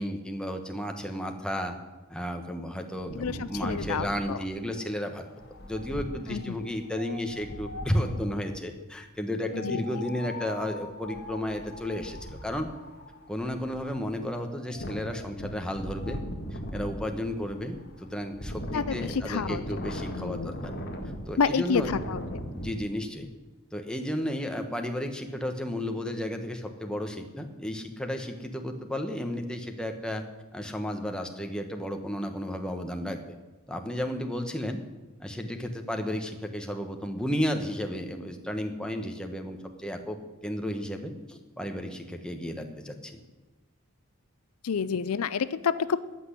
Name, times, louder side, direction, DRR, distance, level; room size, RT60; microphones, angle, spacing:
voice 1, 0.0-1.8 2.1-5.2 5.6-12.7 13.3-16.2 16.5-20.7 21.3-22.0 22.5-23.3 23.7-30.2 30.5-33.2 33.7-34.8 35.2-43.2, left 1 dB, 5° left, 4 dB, 1.1 m, -33 dB
Wind, 3.0-8.4 9.5-22.7, equal, 45° left, 1.7 m, -39 dB
voice 2, 3.1-4.4 6.3-6.6 9.5-10.0 18.7-20.5 21.4-22.4 44.6-46.0, left 6 dB, 75° left, 15 dB, 0.5 m, -29 dB
14.0 x 6.1 x 10.0 m, 1.2 s
head